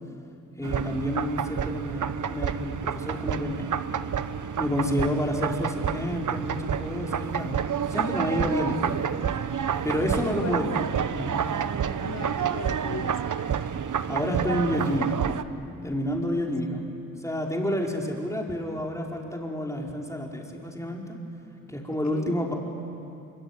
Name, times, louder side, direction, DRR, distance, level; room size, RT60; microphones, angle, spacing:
voice 1, 0.6-3.8 4.6-7.6 7.9-9.0 9.8-10.7 11.1-11.4 14.1-15.2 15.8-16.8 17.2-21.2 21.7-22.5, equal, 10° left, -1 dB, 5.0 m, -29 dB
sound 1, 0.6-15.4, right 8 dB, 65° right, 1.0 m, -29 dB
voice 2, 10.0-10.6 12.0-13.2 16.3-16.5 22.0-22.4, left 5 dB, 50° left, 10 dB, 1.4 m, -38 dB
24.5 x 24.5 x 9.8 m, 2.7 s
cardioid pair, 65°, 34 cm